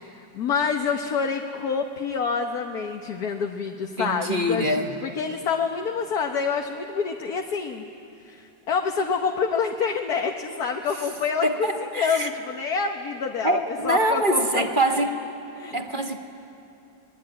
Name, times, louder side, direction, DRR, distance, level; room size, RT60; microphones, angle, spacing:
voice 1, 0.2-7.8 8.2-13.6 13.8-15.0 15.5-15.8, left 5 dB, 60° left, 3 dB, 1.6 m, -27 dB
voice 2, 4.0-4.9 11.4-12.3 13.4-15.1 15.7-16.2, right 1 dB, 30° right, 4 dB, 1.5 m, -24 dB
25.5 x 21.5 x 9.8 m, 2.6 s
omnidirectional pair, 2.0 m